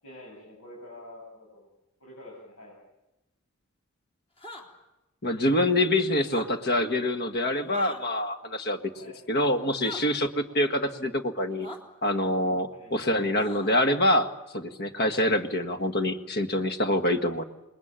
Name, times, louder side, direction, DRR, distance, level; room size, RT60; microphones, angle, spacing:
voice 1, 0.0-1.7 2.0-2.8 8.9-9.2 10.5-10.7 12.7-13.1, left 1 dB, 75° left, -2 dB, 7.5 m, -47 dB
sound 1, 4.4-4.7 6.2-6.5 7.7-8.0 9.8-10.0 11.6-11.8 13.4-13.8, left 1 dB, 25° left, 3.8 m, -41 dB
voice 2, 5.2-8.8 9.3-11.7 12.0-17.4, left 1 dB, 50° left, 6 dB, 1.8 m, -25 dB
28.0 x 21.5 x 9.0 m, 0.97 s
head